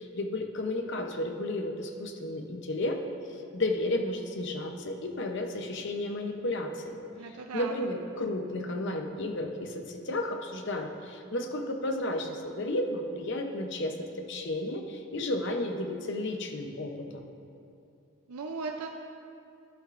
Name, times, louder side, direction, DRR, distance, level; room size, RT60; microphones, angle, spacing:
voice 1, 0.0-3.0 3.3-7.0 7.3-17.3, left 1 dB, 50° left, 4 dB, 0.7 m, -33 dB
voice 2, 7.1-7.8 18.3-18.9, right 4 dB, 80° right, 3 dB, 0.5 m, -37 dB
11.5 x 11.5 x 2.5 m, 2.6 s
head